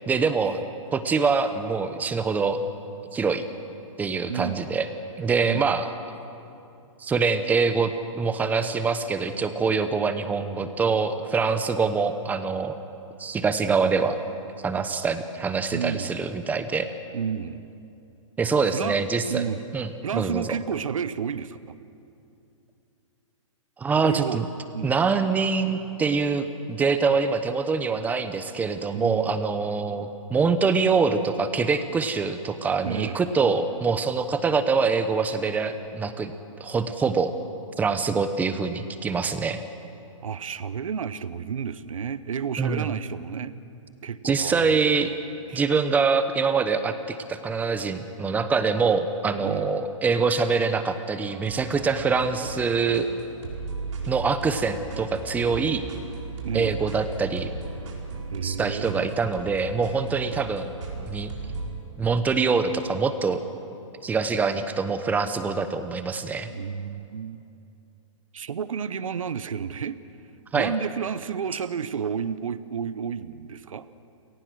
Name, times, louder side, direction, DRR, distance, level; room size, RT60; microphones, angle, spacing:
voice 1, 0.1-0.6 0.9-2.6 3.1-3.4 4.0-4.9 5.2-5.9 7.0-12.8 13.2-14.2 14.6-16.9 18.4-19.4 19.7-20.6 23.8-24.4 24.8-36.3 36.6-37.3 37.8-39.6 42.6-42.9 44.2-45.1 45.5-53.1 54.1-55.8 56.5-57.5 58.4-60.7 61.1-61.3 62.0-63.4 64.0-66.5 70.5-70.7, right 5 dB, 10° right, 10 dB, 0.9 m, -24 dB
voice 2, 4.3-4.6 5.5-5.7 15.7-16.1 17.1-17.7 18.7-19.0 19.3-19.6 20.0-21.6 24.0-24.4 24.7-24.9 28.9-29.4 32.8-33.2 40.2-43.6 44.0-44.9 45.5-45.7 49.4-49.7 56.4-56.8 58.3-59.2 66.5-67.4 68.3-70.0 70.5-73.9, right 7 dB, 85° right, 15 dB, 0.9 m, -31 dB
sound 1, 51.3-61.7, right 3 dB, 70° right, 4.8 m, -36 dB
28.5 x 18.5 x 6.3 m, 2.7 s
hypercardioid pair, 145°, 17 cm